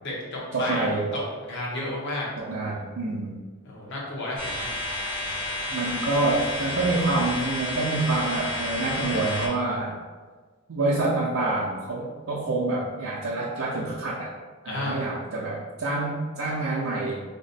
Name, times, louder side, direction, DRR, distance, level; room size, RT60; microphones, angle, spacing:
voice 1, 0.0-2.3 3.6-4.7 14.6-15.0, left 1 dB, 60° left, -4 dB, 1.0 m, -32 dB
voice 2, 0.5-1.1 2.4-3.3 5.7-10.0 10.7-14.3 14.6-17.2, right 2 dB, 80° right, -6 dB, 0.5 m, -27 dB
sound 1, 4.4-9.5, left 1 dB, 40° left, 1.3 m, -31 dB
3.5 x 2.1 x 4.0 m, 1.4 s
head